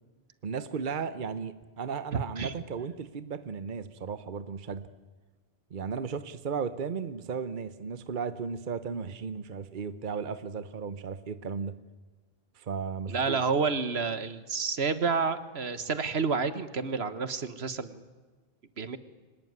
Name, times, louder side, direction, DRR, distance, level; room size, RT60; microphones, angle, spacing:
voice 1, 0.4-4.8 5.7-11.7 12.6-13.4, right 6 dB, 55° right, 13 dB, 1.0 m, -35 dB
voice 2, 2.1-2.5 13.1-18.0 18.8-19.0, right 5 dB, 80° right, 13 dB, 1.6 m, -29 dB
25.0 x 19.0 x 9.6 m, 1.4 s
omnidirectional pair, 1.1 m